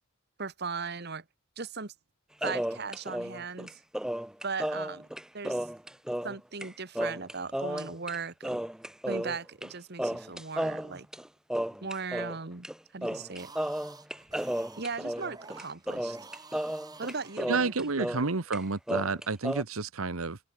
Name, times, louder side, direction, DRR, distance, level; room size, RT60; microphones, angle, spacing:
voice 1, 0.4-1.2 1.6-1.9 2.4-3.7 4.4-5.1 5.3-5.7 6.2-8.6 9.1-11.1 11.8-12.7 12.9-13.5 14.8-16.2 17.0-18.2, right 4 dB, 50° right, 1.5 m, -38 dB
sound 1, 2.4-6.4 6.6-6.7 6.9-8.2 8.4-9.7 10.0-12.4 12.6-12.8 13.0-18.3 18.5-19.6, equal, 5° right, 0.4 m, -33 dB
sound 2, 13.2-18.0, right 3 dB, 20° right, 5.8 m, -50 dB
voice 2, 17.5-20.4, right 4 dB, 85° right, 1.2 m, -30 dB
open air
head